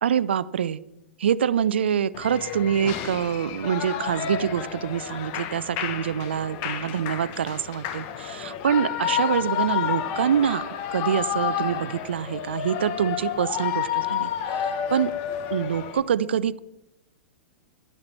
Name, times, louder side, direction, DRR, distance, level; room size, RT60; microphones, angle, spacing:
voice 1, 0.0-0.8 1.2-10.6 10.9-14.3 14.9-15.1 15.5-16.6, right 8 dB, 65° right, 19 dB, 0.5 m, -25 dB
Shout / Cheering, 2.1-16.0, left 9 dB, 40° left, 1.2 m, -30 dB
12.0 x 11.5 x 4.4 m, 0.91 s
figure-of-eight pair, 105°, 7 cm